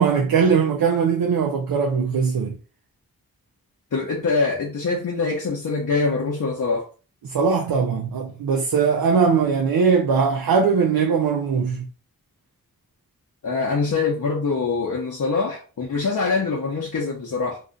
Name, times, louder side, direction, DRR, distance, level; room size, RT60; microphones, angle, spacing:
voice 1, 0.0-2.6 7.3-11.9, right 6 dB, 85° right, 0.5 m, -20 dB
voice 2, 3.9-6.9 13.4-17.6, left 4 dB, 60° left, 0.7 m, -24 dB
2.6 x 2.4 x 3.7 m
wide cardioid pair, 80°, 35 cm